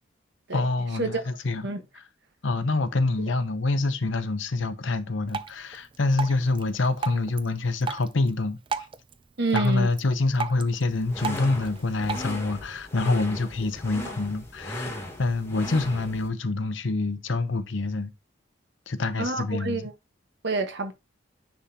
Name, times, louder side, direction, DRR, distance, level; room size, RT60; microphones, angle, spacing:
voice 1, 0.5-1.7 1.9-2.0 2.4-8.6 9.5-18.1 18.9-19.9, left 3 dB, 70° left, 0.8 m, -26 dB
Drip, 5.3-12.3, right 5 dB, 25° right, 0.4 m, -36 dB
voice 2, 9.4-9.9 19.2-19.9 20.4-20.9, right 2 dB, 65° right, 1.3 m, -27 dB
sound 1, 10.9-16.3, left 1 dB, 15° left, 1.6 m, -37 dB
10.0 x 3.6 x 2.9 m
head